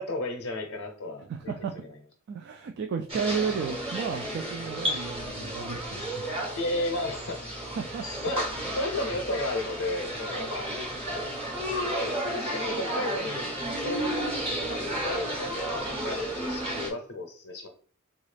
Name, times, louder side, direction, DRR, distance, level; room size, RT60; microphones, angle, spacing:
voice 1, 0.0-1.2 6.6-7.7 8.2-10.7 11.9-13.5 13.8-14.1 14.7-17.7, left 1 dB, 70° left, 1 dB, 0.6 m, -33 dB
voice 2, 1.2-1.7 2.3-6.2 7.7-8.1, right 6 dB, 50° right, 5 dB, 0.3 m, -33 dB
sound 1, 3.1-16.9, right 1 dB, 25° right, 1.0 m, -32 dB
3.9 x 2.3 x 3.2 m, 0.43 s
head